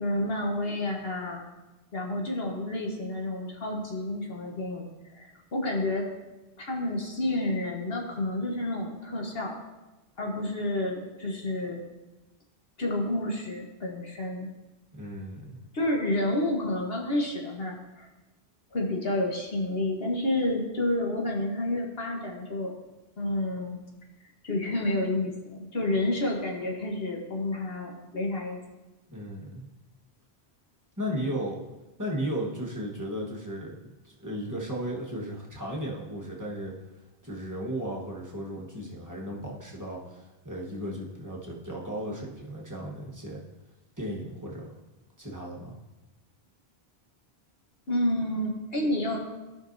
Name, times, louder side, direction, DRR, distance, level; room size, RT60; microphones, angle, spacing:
voice 1, 0.0-1.4 1.9-4.9 5.2-6.1 6.6-9.5 10.2-11.8 12.8-14.5 15.7-18.1 18.7-22.7 23.2-23.8 24.4-28.6 47.9-49.2, left 1 dB, 65° left, -1 dB, 1.5 m, -29 dB
voice 2, 15.0-15.6 29.1-29.6 31.0-31.6 32.0-33.8 34.0-36.7 37.2-43.4 44.0-44.7 45.2-45.8, equal, 20° right, -4 dB, 1.2 m, -35 dB
14.0 x 5.3 x 2.6 m, 1.1 s
omnidirectional pair, 1.1 m